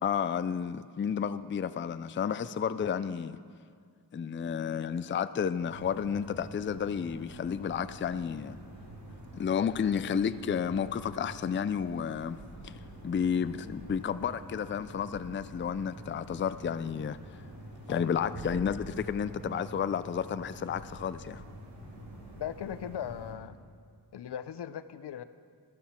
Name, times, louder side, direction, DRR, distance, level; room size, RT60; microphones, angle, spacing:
voice 1, 0.0-3.4 4.1-8.6 9.3-12.8 13.0-17.2 17.9-21.4, left 7 dB, 30° left, 14 dB, 0.4 m, -31 dB
sound 1, 5.6-23.3, right 1 dB, 55° right, 4.2 m, -47 dB
voice 2, 17.9-18.3 22.4-23.5 24.1-25.2, left 9 dB, 70° left, 13 dB, 0.6 m, -39 dB
15.0 x 12.5 x 4.3 m, 2.1 s
cardioid pair, 60°, 41 cm